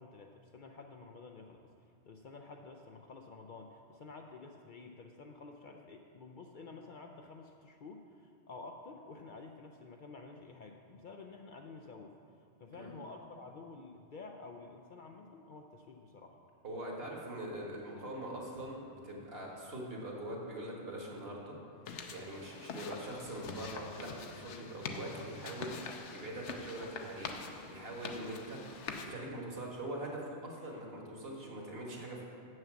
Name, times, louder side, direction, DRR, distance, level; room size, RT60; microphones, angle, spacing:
voice 1, 0.0-12.1 12.6-16.4, left 3 dB, 55° left, 3 dB, 0.6 m, -50 dB
voice 2, 16.6-21.5 22.1-32.2, right 1 dB, 60° right, -2 dB, 1.7 m, -43 dB
sound 1, 21.9-29.1, left 5 dB, 90° left, 1.0 m, -45 dB
7.0 x 6.4 x 7.4 m, 2.5 s
omnidirectional pair, 1.2 m